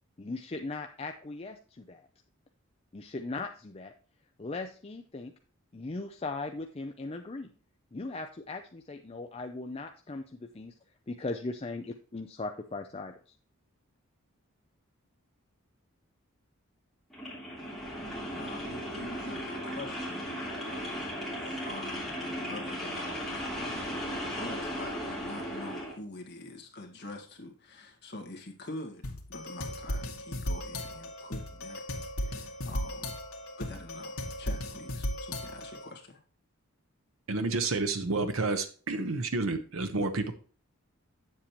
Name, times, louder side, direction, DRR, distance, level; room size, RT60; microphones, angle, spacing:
voice 1, 0.2-2.0 2.9-3.9 4.4-5.3 5.7-7.5 7.9-10.7 11.1-13.1, left 3 dB, 25° left, 5 dB, 0.5 m, -38 dB
sound 1, 17.1-26.0, equal, ahead, 2.9 m, -36 dB
voice 2, 18.3-20.4 20.6-24.1 24.4-29.0 29.3-31.8 32.2-33.1 33.6-36.2, left 2 dB, 50° left, 2 dB, 1.7 m, -45 dB
sound 2, 29.0-35.9, left 1 dB, 85° left, 1.7 m, -36 dB
voice 3, 37.3-40.3, right 3 dB, 75° right, 8 dB, 0.9 m, -30 dB
8.5 x 7.5 x 3.0 m, 0.40 s
head